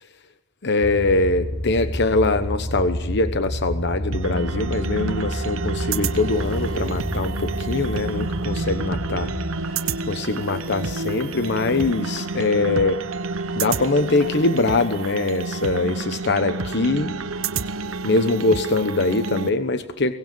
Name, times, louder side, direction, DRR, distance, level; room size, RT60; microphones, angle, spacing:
voice 1, 0.6-9.3 9.7-13.0 13.6-17.1 18.0-20.1, left 3 dB, 60° left, 9 dB, 1.0 m, -23 dB
sound 1, 0.8-9.4, equal, 85° left, 5.7 m, -30 dB
sound 2, 4.1-19.5, right 3 dB, 90° right, 1.0 m, -29 dB
Motorcycle, 5.9-12.0, equal, 30° left, 4.9 m, -39 dB
23.0 x 19.0 x 8.9 m, 0.98 s
head